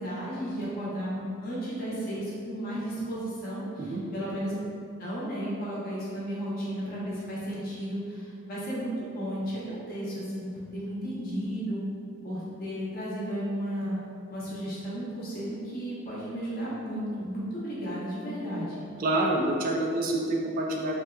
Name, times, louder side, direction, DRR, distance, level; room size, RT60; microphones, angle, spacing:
voice 1, 0.0-4.5 5.0-11.8 12.2-14.0 14.3-18.8, equal, 45° left, -8 dB, 1.0 m, -34 dB
voice 2, 19.0-20.9, right 1 dB, 40° right, 0 dB, 0.3 m, -27 dB
3.4 x 2.8 x 2.3 m, 2.4 s
head